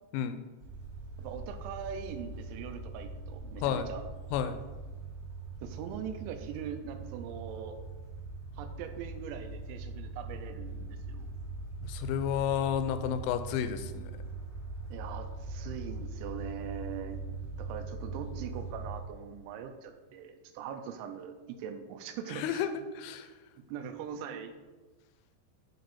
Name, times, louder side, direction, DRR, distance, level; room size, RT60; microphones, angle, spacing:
sound 1, 0.6-19.0, right 3 dB, 45° right, 2.2 m, -42 dB
voice 1, 1.2-4.1 5.6-7.8 8.6-11.3 14.9-17.2 17.5-22.7 23.6-24.5, right 8 dB, 85° right, 7 dB, 2.8 m, -41 dB
voice 2, 11.8-14.1 22.3-22.7 22.9-23.3, left 9 dB, 85° left, 9 dB, 3.0 m, -31 dB
10.0 x 3.7 x 4.1 m, 1.3 s
omnidirectional pair, 5.5 m